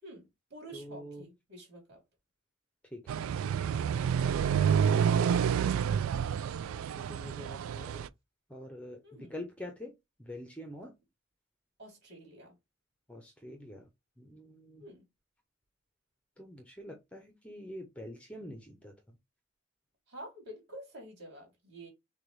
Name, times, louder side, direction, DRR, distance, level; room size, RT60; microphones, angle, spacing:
voice 1, 0.0-2.0 4.3-6.0 9.0-9.3 11.8-12.6 14.8-15.1 20.1-21.9, equal, 50° right, 2.8 m, -49 dB
voice 2, 0.7-1.2 2.9-3.3 4.2-5.4 7.0-8.1 8.5-9.0 9.3-9.9 10.2-10.9 13.1-13.9 14.2-14.8 16.4-19.0, left 1 dB, 5° left, 0.7 m, -46 dB
sound 1, 3.1-8.1, right 8 dB, 85° right, 0.3 m, -29 dB
6.4 x 2.3 x 3.2 m
head